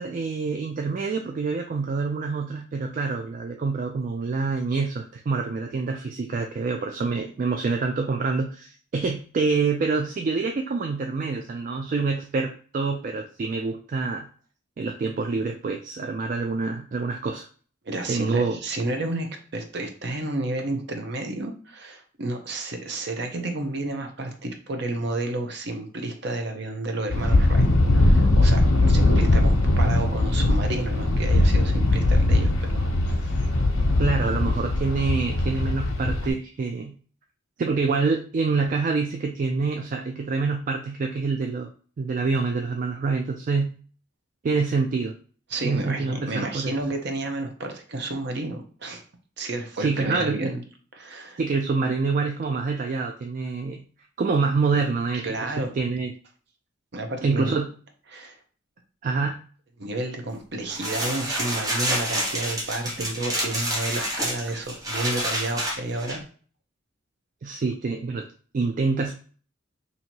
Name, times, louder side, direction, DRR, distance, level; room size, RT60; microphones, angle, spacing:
voice 1, 0.0-14.3 14.8-17.5 18.1-18.6 34.0-37.0 37.6-41.7 42.0-43.8 44.4-45.2 45.6-46.7 49.8-50.5 51.4-53.8 54.2-56.1 57.2-57.7 59.0-59.4 67.4-68.3 68.5-69.1, right 4 dB, 40° right, 3 dB, 0.3 m, -26 dB
voice 2, 17.8-27.7 27.9-33.5 45.5-49.0 49.4-50.6 50.9-51.4 55.1-55.7 56.9-57.5 58.1-58.4 59.8-66.2, right 2 dB, 55° right, 4 dB, 0.8 m, -31 dB
sound 1, 27.1-36.3, left 2 dB, 90° left, 0.8 m, -20 dB
sound 2, 60.7-66.2, right 1 dB, 20° right, 0.9 m, -28 dB
2.8 x 2.8 x 4.4 m, 0.42 s
head